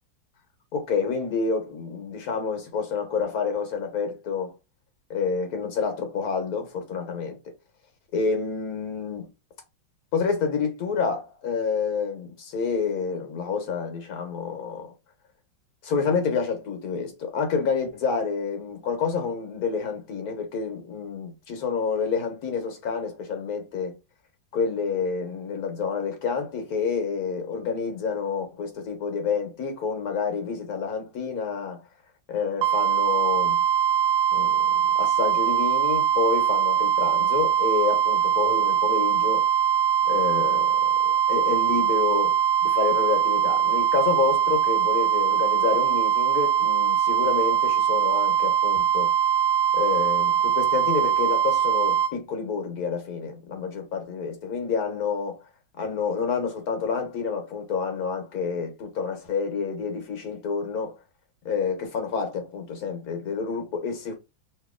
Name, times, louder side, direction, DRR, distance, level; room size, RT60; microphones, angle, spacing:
voice 1, 0.7-4.5 5.1-7.4 8.1-9.3 10.1-14.9 15.8-23.9 24.5-31.8 32.3-33.6 34.3-39.4 40.1-40.7 41.3-42.4 42.6-49.1 49.7-55.4 55.8-61.0 61.4-64.1, left 5 dB, 55° left, 1.4 m, -28 dB
sound 1, 32.6-52.1, right 9 dB, 75° right, 0.8 m, -22 dB
3.0 x 3.0 x 3.6 m
omnidirectional pair, 2.1 m